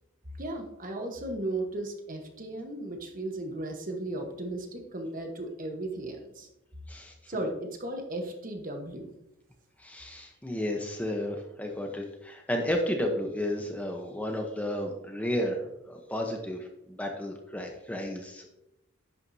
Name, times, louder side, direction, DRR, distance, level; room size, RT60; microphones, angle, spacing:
voice 1, 0.4-6.5 7.3-9.1, right 1 dB, 40° right, 4 dB, 1.2 m, -35 dB
voice 2, 6.9-7.4 9.8-18.5, left 1 dB, 5° left, 2 dB, 0.9 m, -33 dB
11.0 x 9.0 x 2.8 m, 0.87 s
head